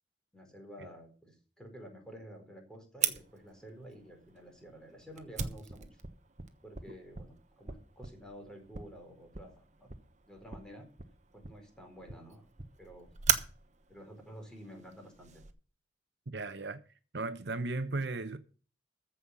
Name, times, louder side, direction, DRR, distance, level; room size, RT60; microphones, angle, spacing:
voice 1, 0.3-6.0 6.6-9.9 10.3-10.9 11.3-12.5 12.8-13.1 13.9-15.4, equal, 5° left, 4.4 m, -51 dB
Fire, 3.0-15.5, right 8 dB, 40° right, 1.1 m, -39 dB
voice 2, 16.3-16.8 17.1-18.4, right 3 dB, 65° right, 0.9 m, -35 dB
14.5 x 5.7 x 7.3 m
head